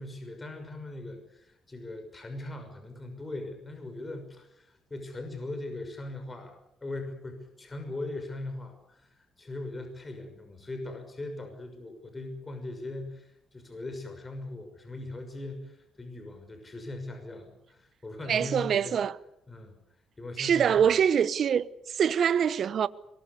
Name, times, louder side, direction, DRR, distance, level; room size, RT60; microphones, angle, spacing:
voice 1, 0.0-19.0 19.5-19.8 20.2-20.8, left 2 dB, 25° left, 6.2 m, -40 dB
voice 2, 18.3-19.1 20.4-22.9, right 8 dB, 60° right, 1.0 m, -24 dB
24.0 x 22.0 x 8.3 m
cardioid pair, 90°, 0 cm